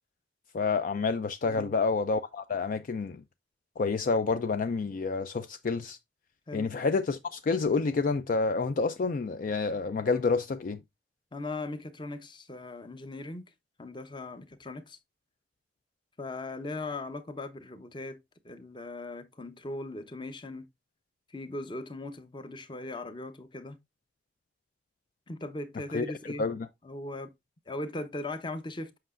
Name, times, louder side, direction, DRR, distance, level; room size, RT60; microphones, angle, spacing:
voice 1, 0.5-3.2 3.8-6.0 6.5-10.8 25.9-26.0 26.4-26.7, left 4 dB, 50° left, 0.4 m, -28 dB
voice 2, 11.3-13.5 13.8-15.0 16.2-18.2 18.4-20.7 21.3-23.8 25.3-26.5 26.8-27.3 27.7-29.0, left 2 dB, 25° left, 0.8 m, -39 dB
7.7 x 5.7 x 2.4 m
head